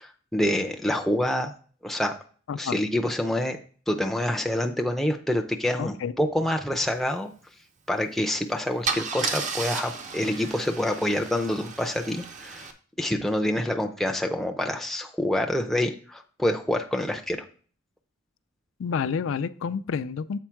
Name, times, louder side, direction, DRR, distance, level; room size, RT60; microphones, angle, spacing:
voice 1, 0.0-1.5 1.8-2.1 2.6-3.6 3.9-7.3 7.9-12.7 13.0-17.4, left 1 dB, ahead, 2 dB, 0.5 m, -27 dB
voice 2, 5.8-6.1 18.8-20.4, left 6 dB, 75° left, 14 dB, 0.4 m, -29 dB
Car / Engine starting / Idling, 8.1-8.3 8.9-12.7, right 5 dB, 40° right, 0.7 m, -33 dB
7.3 x 4.3 x 4.5 m, 0.43 s
head